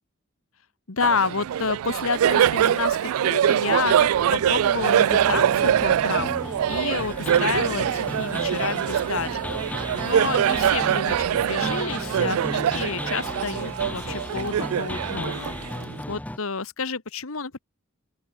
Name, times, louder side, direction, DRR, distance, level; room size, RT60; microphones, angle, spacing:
voice 1, 0.9-15.6 16.1-17.6, left 4 dB, 70° left, 1.5 m, -30 dB
Laughter, 1.0-16.0, right 10 dB, 90° right, 0.3 m, -23 dB
sound 1, 4.3-16.4, left 1 dB, 5° left, 0.6 m, -35 dB
open air
head